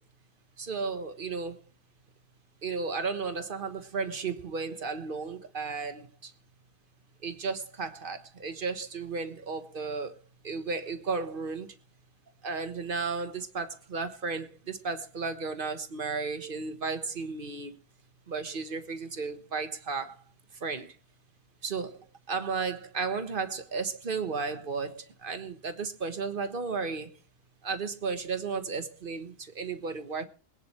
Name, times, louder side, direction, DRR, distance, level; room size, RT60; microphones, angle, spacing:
voice 1, 0.6-1.6 2.6-6.3 7.2-11.7 12.4-17.7 18.3-20.2 20.6-21.0 21.6-27.2 27.6-30.2, right 4 dB, 40° right, 1.4 m, -34 dB
22.0 x 10.5 x 3.3 m
omnidirectional pair, 1.4 m